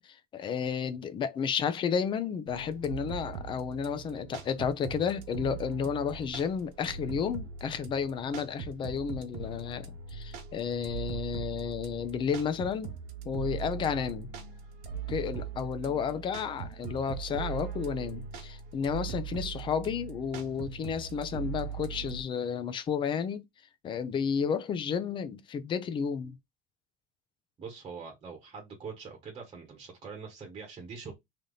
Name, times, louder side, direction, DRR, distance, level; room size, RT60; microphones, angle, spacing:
voice 1, 0.0-12.9 13.2-14.3 15.1-23.5 23.8-26.4, left 7 dB, 25° left, 0.4 m, -32 dB
sound 1, 2.5-22.2, right 7 dB, 85° right, 1.2 m, -40 dB
voice 2, 27.6-31.1, right 5 dB, 25° right, 1.1 m, -43 dB
3.4 x 2.7 x 3.8 m
cardioid pair, 160°, 20 cm